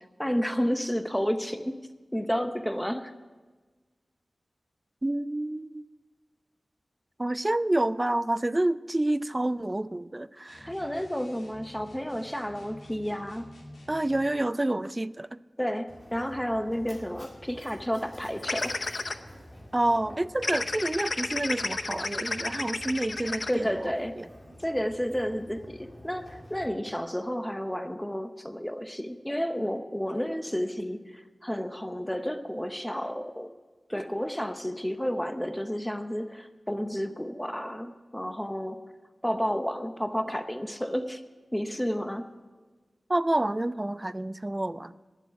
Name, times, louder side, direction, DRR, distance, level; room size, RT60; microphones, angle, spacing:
voice 1, 0.2-1.8 2.1-3.1 10.7-13.5 15.6-18.7 23.5-24.2 24.6-33.5 33.9-38.8 39.2-41.2 41.5-42.3, equal, 5° left, 9 dB, 0.8 m, -31 dB
voice 2, 5.0-5.9 7.2-10.7 13.9-15.4 19.7-24.3 43.1-45.0, right 1 dB, 25° right, 17 dB, 0.3 m, -28 dB
sound 1, 10.5-14.3, left 1 dB, 85° left, 2.4 m, -49 dB
Mechanisms, 15.9-26.7, equal, 25° left, 2.4 m, -49 dB
sound 2, 18.4-19.1 20.4-23.5, left 3 dB, 55° left, 0.6 m, -31 dB
11.0 x 7.6 x 9.7 m, 1.3 s
wide cardioid pair, 80°, 0 cm